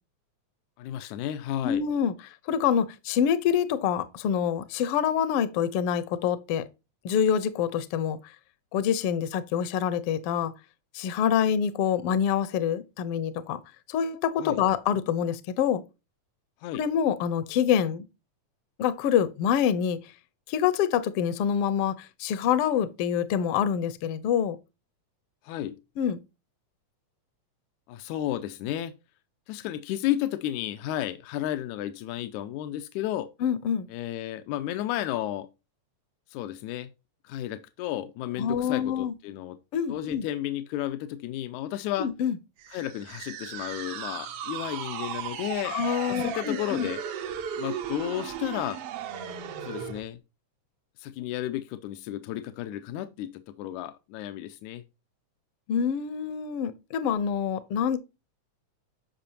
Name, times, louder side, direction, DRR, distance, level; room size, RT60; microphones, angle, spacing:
voice 1, 0.8-1.8 14.4-14.6 16.6-16.8 25.4-25.8 27.9-28.9 29.5-33.3 33.9-35.5 36.3-36.9 37.2-39.6 39.9-42.1 42.7-45.8 46.1-47.0 47.6-48.8 49.6-50.2 51.0-54.8, left 13 dB, 85° left, 2.1 m, -32 dB
voice 2, 1.6-2.1 2.5-6.7 7.0-8.2 8.7-10.5 10.9-13.6 13.9-15.8 16.7-18.1 18.8-20.0 20.5-24.6 26.0-26.2 33.4-33.9 38.4-39.1 39.7-40.2 42.0-42.4 45.6-46.9 55.7-58.0, left 8 dB, 70° left, 1.4 m, -26 dB
sound 1, 42.6-50.0, right 9 dB, 65° right, 1.6 m, -36 dB
10.5 x 5.7 x 2.8 m
omnidirectional pair, 3.4 m